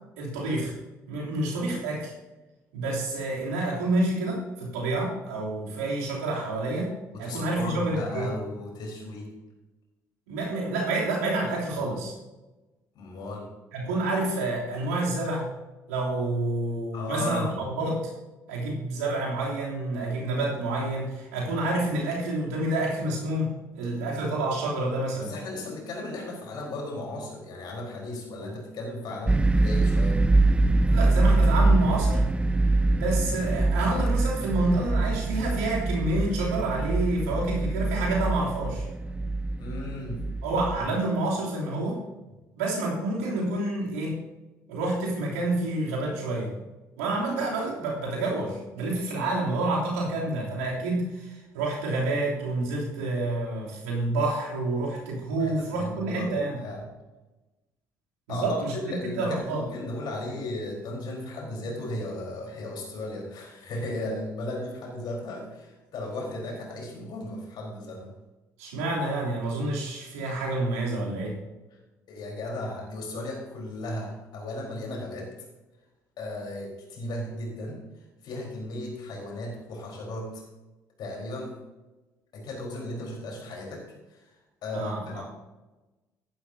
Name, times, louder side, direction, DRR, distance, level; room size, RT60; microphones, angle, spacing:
voice 1, 0.2-0.7 1.1-2.1 2.7-8.3 10.3-12.1 13.7-15.5 15.9-18.1 18.5-25.3 30.9-32.2 32.9-38.8 40.4-42.0 42.5-44.2 44.7-46.5 47.0-56.6 58.3-59.6 68.6-71.4 84.7-85.2, right 2 dB, 80° right, -4 dB, 3.1 m, -28 dB
voice 2, 7.1-9.3 12.9-13.5 16.9-17.6 25.2-30.2 39.6-40.3 40.8-40.9 55.4-56.8 58.3-68.1 72.1-75.3 76.2-77.8 78.2-80.4 81.0-81.5 82.3-84.2 84.6-85.2, left 1 dB, 60° left, -1 dB, 4.2 m, -35 dB
sound 1, 29.3-40.8, right 2 dB, 15° right, 0.5 m, -24 dB
14.0 x 11.5 x 2.8 m, 1.1 s
hypercardioid pair, 50°, 8 cm